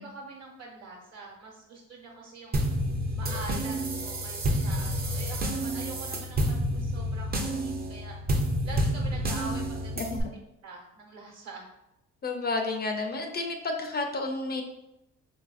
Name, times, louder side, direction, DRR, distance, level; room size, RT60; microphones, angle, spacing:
voice 1, 0.0-2.7 3.2-8.2 8.6-11.7, right 3 dB, 60° right, -1 dB, 1.1 m, -44 dB
sound 1, 2.5-10.2, equal, 30° right, 0.5 m, -29 dB
voice 2, 12.2-14.6, left 3 dB, 35° left, 4 dB, 0.4 m, -31 dB
3.7 x 2.5 x 2.4 m, 0.87 s
cardioid pair, 90°, 30 cm